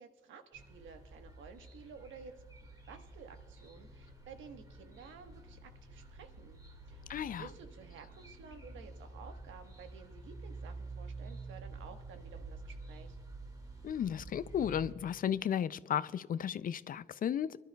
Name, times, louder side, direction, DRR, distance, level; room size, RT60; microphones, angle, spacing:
voice 1, 0.0-2.4 2.9-6.6 6.9-7.0 7.4-13.2, right 6 dB, 75° right, 1.3 m, -53 dB
sound 1, 0.5-14.9, right 3 dB, 20° right, 1.9 m, -49 dB
voice 2, 7.1-7.5 13.8-17.6, left 9 dB, 45° left, 0.4 m, -34 dB
25.0 x 12.0 x 2.3 m
cardioid pair, 90°, 20 cm